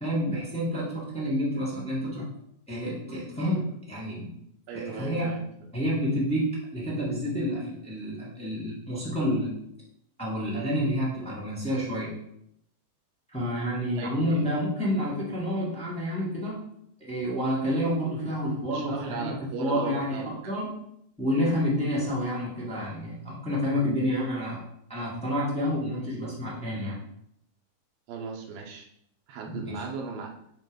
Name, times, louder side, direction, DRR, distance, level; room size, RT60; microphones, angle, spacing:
voice 1, 0.0-2.3 2.7-4.3 4.7-5.3 5.7-9.5 10.2-12.1 13.3-16.6 17.0-20.7 21.2-24.6 24.9-27.0 29.5-29.8, equal, 5° left, -7 dB, 0.5 m, -29 dB
voice 2, 4.7-5.4 13.9-14.5 18.7-20.5 28.1-28.9 29.3-30.3, right 4 dB, 90° right, 1 dB, 2.9 m, -37 dB
8.2 x 3.3 x 5.3 m, 0.74 s
omnidirectional pair, 4.1 m